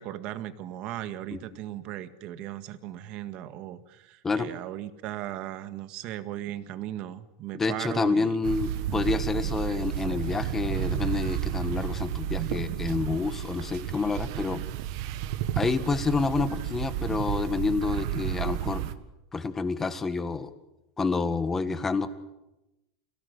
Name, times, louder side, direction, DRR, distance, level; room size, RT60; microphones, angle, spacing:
voice 1, 0.0-8.4, right 12 dB, 40° right, 11 dB, 1.8 m, -37 dB
voice 2, 7.6-14.6 15.5-18.8 19.3-20.5 21.0-22.1, left 4 dB, 10° left, 10 dB, 1.7 m, -28 dB
sound 1, 8.4-18.9, right 12 dB, 60° right, 1.7 m, -31 dB
28.5 x 17.5 x 9.7 m, 0.97 s
supercardioid pair, 155°, 3 cm